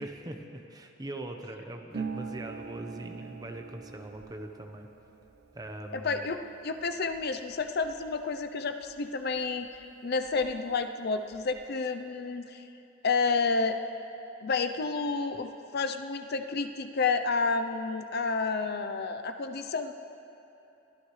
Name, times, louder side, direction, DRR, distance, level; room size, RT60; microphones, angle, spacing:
voice 1, 0.0-4.9 5.5-6.3, right 1 dB, 20° right, 4 dB, 0.9 m, -41 dB
Harp, 1.9-9.4 9.7-10.8 11.0-11.7, right 5 dB, 55° right, 0.7 m, -45 dB
voice 2, 5.9-6.4 6.6-12.7 13.0-13.8 14.4-19.9, left 4 dB, 55° left, 8 dB, 0.6 m, -30 dB
23.0 x 14.5 x 3.2 m, 3.0 s
head